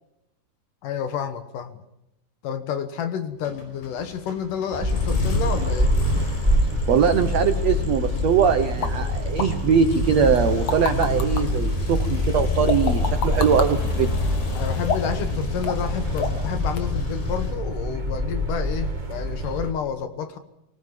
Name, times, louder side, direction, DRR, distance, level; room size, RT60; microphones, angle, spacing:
voice 1, 0.8-1.8 2.4-6.0 14.5-20.4, left 7 dB, 65° left, 10 dB, 2.5 m, -30 dB
sound 1, 3.4-17.5, left 4 dB, 80° left, 6.8 m, -30 dB
sound 2, 4.8-19.7, equal, 50° right, 0.5 m, -26 dB
voice 2, 6.9-14.1, right 7 dB, 75° right, 9 dB, 1.5 m, -21 dB
sound 3, 8.8-8.9 9.4-9.5 10.4-11.4 12.7-13.7 14.8-15.2 15.6-15.9 16.2-16.5 16.8-16.9, left 5 dB, 50° left, 2.4 m, -27 dB
23.0 x 19.0 x 7.5 m, 0.83 s
omnidirectional pair, 4.6 m